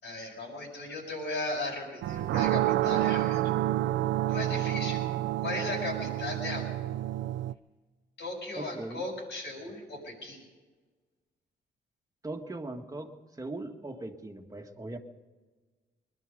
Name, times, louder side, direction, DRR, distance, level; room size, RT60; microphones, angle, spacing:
voice 1, 0.0-3.4 4.3-5.0 5.4-6.9 8.2-10.4, left 2 dB, 75° left, -3 dB, 6.0 m, -36 dB
sound 1, 2.0-7.5, right 14 dB, 85° right, 0.4 m, -29 dB
voice 2, 8.6-9.1 12.2-15.0, right 2 dB, 20° right, 3 dB, 1.7 m, -39 dB
20.5 x 12.0 x 5.4 m, 1.4 s
cardioid pair, 75°, 19 cm